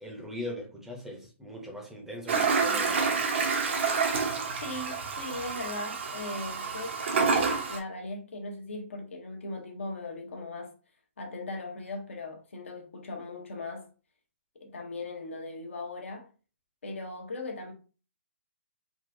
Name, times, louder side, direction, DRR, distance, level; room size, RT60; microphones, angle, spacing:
voice 1, 0.0-3.2, left 1 dB, 5° right, 0.7 m, -40 dB
Toilet flush, 2.3-7.8, right 5 dB, 60° right, 0.8 m, -28 dB
voice 2, 4.6-7.0 7.7-10.7 11.2-13.9 14.5-16.3 16.8-17.7, left 2 dB, 70° left, 0.9 m, -38 dB
3.7 x 2.3 x 2.6 m
hypercardioid pair, 140°, 7 cm